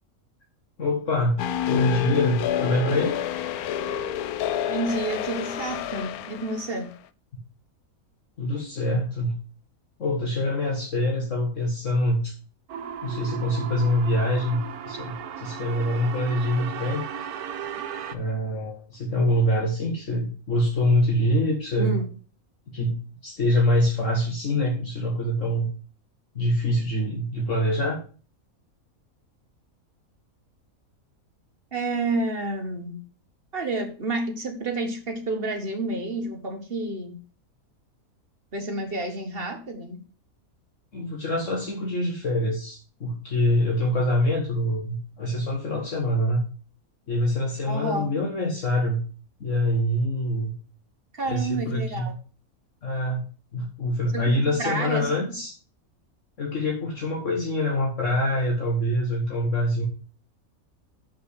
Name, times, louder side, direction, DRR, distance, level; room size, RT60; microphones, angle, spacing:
voice 1, 0.8-1.4 1.7-3.2 8.4-9.3 10.0-12.3 13.0-14.6 14.9-17.0 18.1-22.0 22.7-25.7 26.4-28.0 40.9-46.4 47.1-49.0 49.4-50.5 51.3-52.1 52.8-53.2 53.5-55.5 56.4-59.9, left 1 dB, 55° left, -1 dB, 1.8 m, -25 dB
sound 1, 1.4-6.7, left 10 dB, 90° left, 1.1 m, -28 dB
voice 2, 4.7-6.9 21.8-22.0 31.7-33.0 33.5-37.2 38.5-40.0 47.7-48.1 51.1-52.1 54.1-55.1, right 2 dB, 40° right, 4 dB, 1.7 m, -29 dB
sound 2, 12.7-18.2, right 8 dB, 85° right, 1.3 m, -35 dB
7.4 x 5.7 x 6.4 m, 0.38 s
omnidirectional pair, 1.6 m